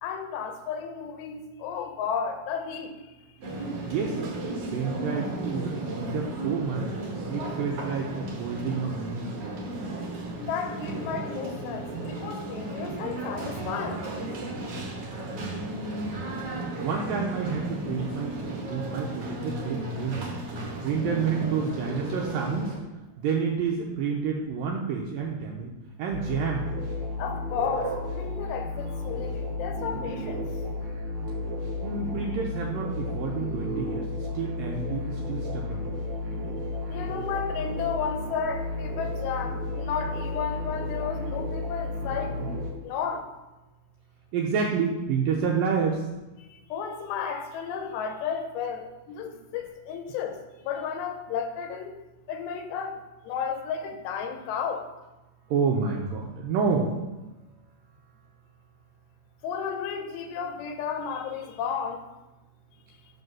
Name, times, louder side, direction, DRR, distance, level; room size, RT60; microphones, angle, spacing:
voice 1, 0.0-2.9 10.4-14.0 27.2-30.4 36.9-42.3 42.8-43.3 46.7-50.4 50.6-51.9 52.3-52.9 53.3-54.8 59.4-62.0, left 6 dB, 85° left, 6 dB, 3.1 m, -33 dB
sound 1, 3.4-22.8, right 2 dB, 55° right, 1.6 m, -34 dB
voice 2, 3.8-4.2 4.7-6.9 7.3-9.6 15.5-16.2 16.8-20.3 20.8-22.8 23.2-25.7 26.0-26.7 31.8-35.9 44.3-46.1 55.5-57.0 57.4-57.5, right 5 dB, 80° right, -1 dB, 2.1 m, -29 dB
sound 2, 26.1-42.7, left 2 dB, 40° right, 2.3 m, -32 dB
7.7 x 5.3 x 6.1 m, 1.1 s
omnidirectional pair, 4.9 m